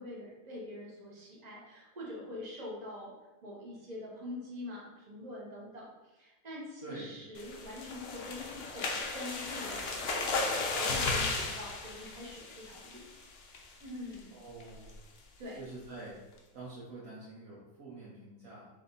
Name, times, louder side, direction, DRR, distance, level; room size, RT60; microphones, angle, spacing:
voice 1, 0.0-3.1 3.4-10.3 10.8-13.1 13.8-14.4 15.4-15.6, left 1 dB, 30° right, -4 dB, 1.1 m, -44 dB
sound 1, 7.4-13.1 13.5-13.8 14.1-14.2 14.6-14.9, left 3 dB, 55° left, 0.7 m, -35 dB
voice 2, 14.3-15.0 15.5-16.2 16.5-18.7, right 3 dB, 65° right, -8 dB, 1.3 m, -46 dB
3.5 x 3.4 x 4.0 m, 1.1 s
omnidirectional pair, 1.5 m